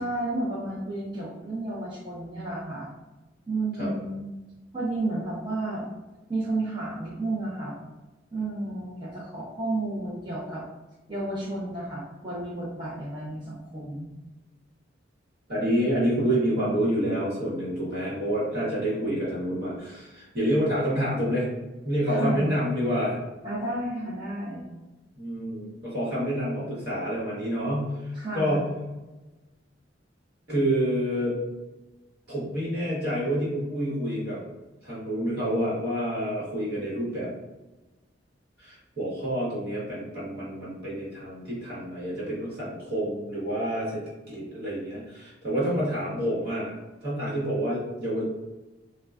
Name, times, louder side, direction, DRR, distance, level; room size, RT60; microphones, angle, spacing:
voice 1, 0.0-2.9 3.5-4.3 4.7-5.9 6.3-7.8 8.3-10.6 11.1-14.1 22.1-22.4 23.4-24.7 28.1-28.7, right 2 dB, 25° right, -8 dB, 0.6 m, -32 dB
voice 2, 15.5-21.5 21.8-23.2 25.1-28.7 30.5-31.3 32.3-34.4 34.8-37.3 38.6-46.7 47.0-48.2, equal, 60° right, -7 dB, 1.2 m, -28 dB
3.6 x 2.2 x 2.4 m, 1.1 s
head